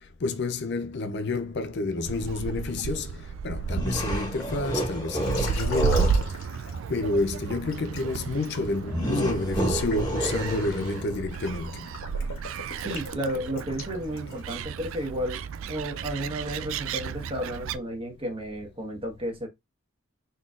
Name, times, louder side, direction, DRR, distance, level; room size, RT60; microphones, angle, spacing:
voice 1, 0.2-6.6 6.9-11.9, left 3 dB, 55° left, 0.5 m, -30 dB
Gull seagull, 2.0-17.8, right 6 dB, 70° right, 0.3 m, -33 dB
sound 1, 3.6-6.3 8.9-11.2, right 1 dB, 20° left, 1.4 m, -29 dB
Liquid, 5.2-7.2 7.7-14.7, left 3 dB, 75° left, 1.9 m, -41 dB
voice 2, 12.8-15.4 15.7-19.5, equal, 25° right, 1.1 m, -32 dB
4.0 x 3.7 x 2.4 m
head